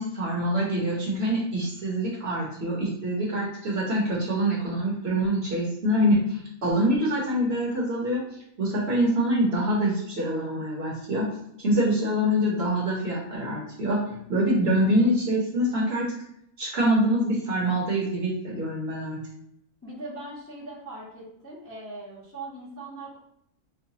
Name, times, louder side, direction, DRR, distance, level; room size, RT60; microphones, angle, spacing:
voice 1, 0.0-8.2 8.6-11.3 11.6-16.1 16.6-19.2, equal, 50° right, -4 dB, 1.1 m, -25 dB
voice 2, 19.8-23.2, right 2 dB, 10° left, -6 dB, 0.7 m, -40 dB
4.6 x 2.2 x 2.7 m, 0.74 s
omnidirectional pair, 1.5 m